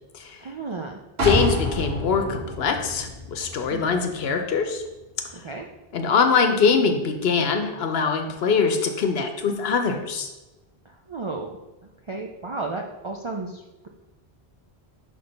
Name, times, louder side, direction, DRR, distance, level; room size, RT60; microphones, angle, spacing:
voice 1, 0.4-1.0 3.7-3.9 5.3-5.7 10.8-11.5 11.8-13.9, right 3 dB, 50° right, 1 dB, 0.3 m, -33 dB
voice 2, 1.2-4.8 5.9-10.3, left 5 dB, 75° left, 5 dB, 1.0 m, -23 dB
sound 1, 1.2-4.9 5.3-5.4, left 1 dB, 70° right, 1.5 m, -29 dB
6.0 x 3.3 x 5.2 m, 1.1 s
omnidirectional pair, 1.0 m